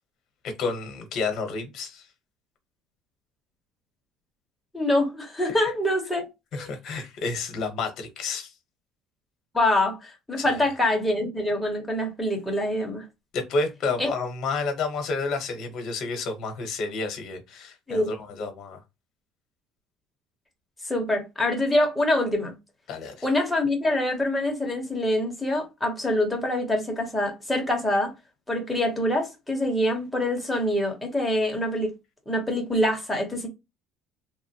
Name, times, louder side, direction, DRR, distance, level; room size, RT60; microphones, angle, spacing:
voice 1, 0.4-2.0 6.5-8.5 10.4-10.6 13.3-18.8 22.9-23.1, left 4 dB, 50° left, 0.8 m, -30 dB
voice 2, 4.7-6.3 6.5-6.7 9.5-13.0 14.0-14.1 17.9-18.1 20.8-22.5 23.2-28.1 28.5-31.9 32.3-33.5, left 1 dB, 5° left, 0.8 m, -25 dB
2.9 x 2.0 x 2.7 m
cardioid pair, 150°, 0 cm